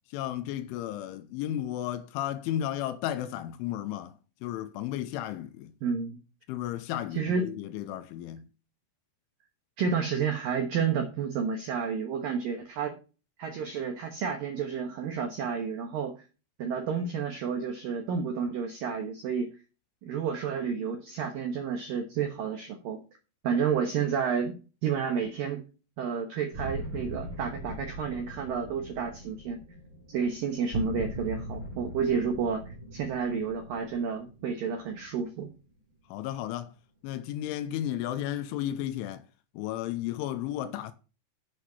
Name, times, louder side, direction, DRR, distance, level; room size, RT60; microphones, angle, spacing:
voice 1, 0.1-4.1 4.4-5.7 6.5-8.5 36.1-36.7 37.0-39.2 39.6-40.9, left 12 dB, 80° left, 3.0 m, -33 dB
voice 2, 5.8-6.2 7.1-7.5 9.8-13.0 13.4-16.1 16.6-19.5 20.0-23.0 23.4-24.5 24.8-25.6 26.0-29.6 30.1-35.5, right 6 dB, 80° right, 2.0 m, -30 dB
sound 1, 26.5-35.4, equal, 25° right, 2.4 m, -40 dB
8.1 x 7.9 x 5.9 m
omnidirectional pair, 5.9 m